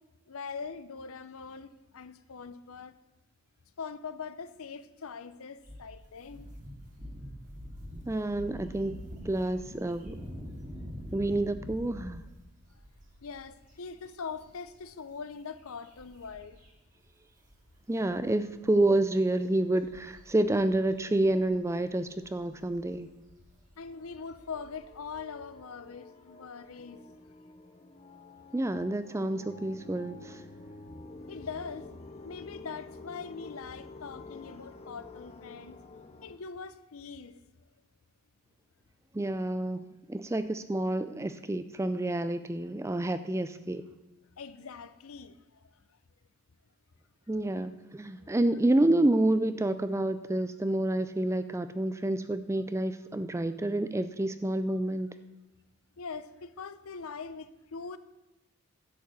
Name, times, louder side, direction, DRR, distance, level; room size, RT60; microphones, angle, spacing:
voice 1, 0.3-2.9 3.8-6.5 13.2-16.6 23.8-27.0 31.3-31.9 32.2-35.8 36.2-37.4 44.4-45.7 48.2-48.3 56.0-58.0, left 5 dB, 75° left, 0.6 m, -42 dB
sound 1, 5.6-16.7 17.0-17.1 17.4-25.2, equal, 35° right, 2.2 m, -46 dB
voice 2, 8.1-10.2 11.1-12.2 17.9-23.1 28.5-30.4 39.1-39.8 40.1-43.8 47.3-55.1, right 1 dB, 10° right, 0.3 m, -28 dB
sound 2, 23.8-36.4, left 3 dB, 25° left, 0.6 m, -49 dB
11.5 x 5.1 x 8.2 m
head